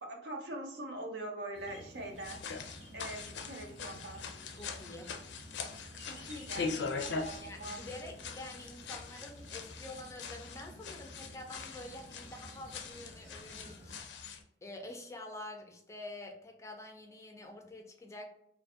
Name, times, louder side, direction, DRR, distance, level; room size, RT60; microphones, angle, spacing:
voice 1, 0.0-2.4 2.9-4.2 6.0-6.7 7.0-7.8, right 1 dB, 75° right, 2 dB, 0.6 m, -43 dB
sound 1, 1.5-14.0, right 1 dB, 40° right, 0.7 m, -53 dB
sound 2, 2.2-14.4, left 5 dB, 80° left, 0.4 m, -42 dB
voice 2, 4.5-5.1 7.4-14.4 14.6-18.2, left 1 dB, 15° left, 3 dB, 0.4 m, -47 dB
2.5 x 2.5 x 2.4 m, 0.75 s
head